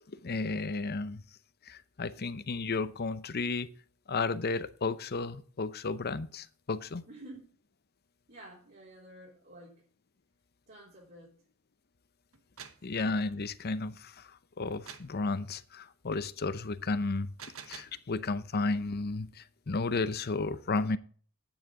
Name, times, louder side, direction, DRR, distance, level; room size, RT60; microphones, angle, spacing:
voice 1, 0.2-1.2 1.7-3.7 4.1-7.0 12.8-17.3 17.7-21.0, left 3 dB, 50° left, 0.7 m, -33 dB
voice 2, 7.1-7.4 8.3-9.8 10.7-11.4 12.7-12.8, right 1 dB, 50° right, 3.6 m, -50 dB
sound 1, 12.3-12.9 14.9-15.2 17.2-18.0, right 7 dB, 70° right, 1.2 m, -47 dB
11.0 x 9.0 x 3.8 m
head